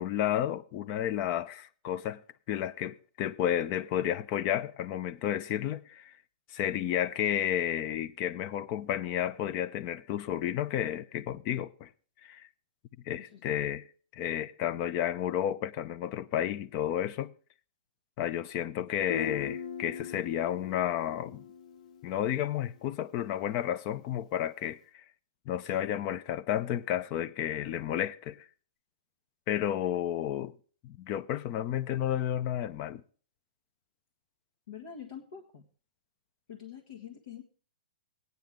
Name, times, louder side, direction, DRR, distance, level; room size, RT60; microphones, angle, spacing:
voice 1, 0.0-2.2 2.5-6.1 6.5-11.9 12.2-12.5 13.1-13.8 14.1-17.3 18.2-21.4 22.0-24.8 25.5-28.5 29.5-30.5 30.8-33.0, left 11 dB, 30° left, 0.5 m, -31 dB
voice 2, 13.2-13.6 34.7-35.6 36.5-37.4, left 8 dB, 65° left, 1.7 m, -45 dB
Guitar, 19.1-22.7, left 7 dB, 50° left, 1.0 m, -41 dB
16.5 x 9.4 x 3.6 m
hypercardioid pair, 155°, 5 cm